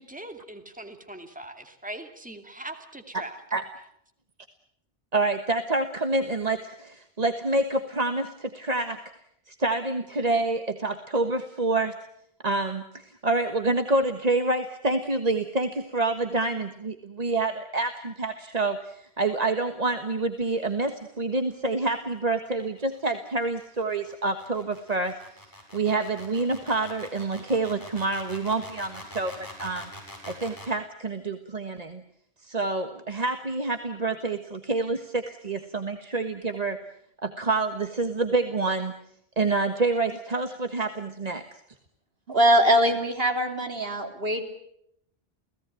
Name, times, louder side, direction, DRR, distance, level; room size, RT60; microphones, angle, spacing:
voice 1, 0.0-3.4, right 1 dB, 10° right, 6 dB, 2.4 m, -41 dB
voice 2, 5.1-9.0 9.5-11.9 12.4-25.1 25.7-29.3 29.6-29.9 30.3-32.0 32.4-36.8 37.2-38.9 39.4-41.4, right 2 dB, 40° right, 7 dB, 1.5 m, -27 dB
sound 1, 21.5-30.8, equal, 20° left, 7.8 m, -45 dB
voice 3, 42.3-44.4, equal, 70° right, 5 dB, 3.6 m, -22 dB
29.5 x 17.5 x 9.1 m, 0.75 s
omnidirectional pair, 1.0 m